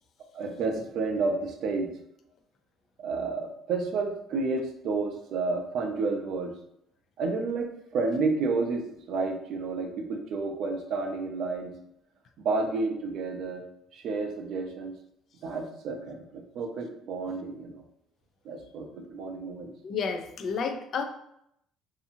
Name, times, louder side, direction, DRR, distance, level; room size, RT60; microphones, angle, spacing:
voice 1, 0.3-1.9 3.0-6.5 7.2-11.7 12.4-13.6 13.9-14.9 15.4-17.8 18.4-19.7, right 3 dB, 60° right, 4 dB, 0.5 m, -30 dB
voice 2, 19.8-21.0, left 5 dB, 55° left, 6 dB, 0.4 m, -31 dB
2.6 x 2.5 x 2.6 m, 0.76 s
cardioid pair, 110°, 0 cm